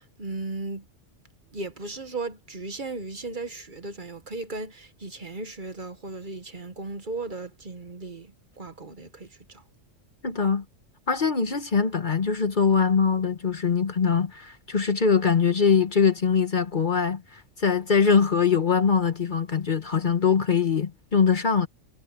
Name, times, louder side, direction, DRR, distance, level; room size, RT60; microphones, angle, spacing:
voice 1, 0.2-0.8 1.5-8.3 8.6-9.3, right 3 dB, 40° right, 1.3 m, -36 dB
voice 2, 10.2-10.6 11.1-21.7, left 6 dB, 45° left, 1.1 m, -22 dB
omnidirectional pair, 1.3 m